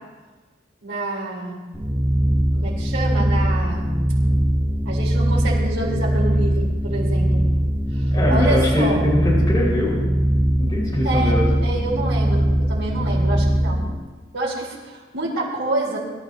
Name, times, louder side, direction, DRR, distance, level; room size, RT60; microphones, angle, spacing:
voice 1, 0.8-1.6 2.5-4.0 4.8-7.5 7.9-9.1 11.0-11.3 11.6-13.9 14.3-16.0, right 2 dB, 90° right, -4 dB, 4.8 m, -28 dB
sound 1, 1.7-13.9, equal, 20° right, 4.8 m, -20 dB
voice 2, 8.0-10.0 10.6-11.4, left 1 dB, 20° left, -7 dB, 5.7 m, -22 dB
23.5 x 13.5 x 3.0 m, 1.3 s
head